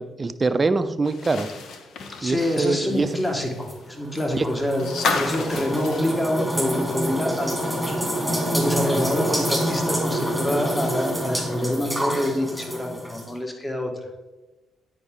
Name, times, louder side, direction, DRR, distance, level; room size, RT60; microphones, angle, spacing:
voice 1, 0.0-1.5 2.2-3.1 4.3-4.4, right 3 dB, 30° right, 11 dB, 0.5 m, -23 dB
sound 1, 1.0-7.1 7.4-7.5 8.9-9.0, left 4 dB, 70° left, 0.8 m, -32 dB
voice 2, 2.2-4.9 5.1-7.5 8.5-14.1, left 1 dB, 20° left, 3 dB, 1.5 m, -26 dB
sound 2, 3.7-13.3, equal, 5° left, 2.2 m, -27 dB
9.6 x 4.8 x 3.7 m, 1.1 s
supercardioid pair, 60°, 0 cm